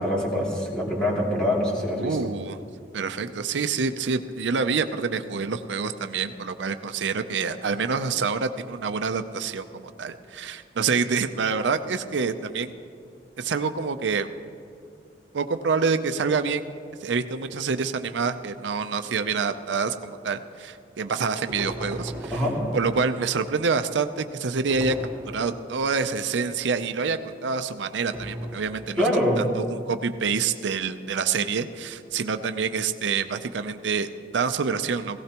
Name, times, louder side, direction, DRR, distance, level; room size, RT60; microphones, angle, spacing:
voice 1, 0.0-2.2 22.3-22.6 29.0-29.5, equal, 5° left, -5 dB, 2.8 m, -24 dB
voice 2, 2.0-2.6 2.9-12.7 13.4-14.3 15.3-16.6 17.0-22.4 22.7-25.0 25.3-29.1 29.4-35.2, right 5 dB, 90° right, 9 dB, 0.5 m, -27 dB
sound 1, 21.5-23.4 24.7-25.9 28.1-29.1, equal, 15° right, 1.4 m, -37 dB
17.5 x 16.5 x 3.0 m, 2.4 s
head